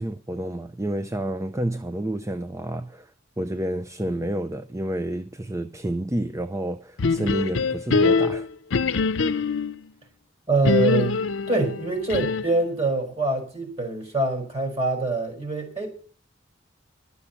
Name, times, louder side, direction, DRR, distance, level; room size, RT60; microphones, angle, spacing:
voice 1, 0.0-3.1 3.4-8.5, right 1 dB, 15° right, 0.5 m, -29 dB
sound 1, 7.0-9.8 10.6-12.6, left 4 dB, 85° left, 0.6 m, -23 dB
voice 2, 10.5-11.2 11.5-15.9, right 2 dB, 35° right, 4.8 m, -25 dB
12.0 x 7.0 x 7.0 m
head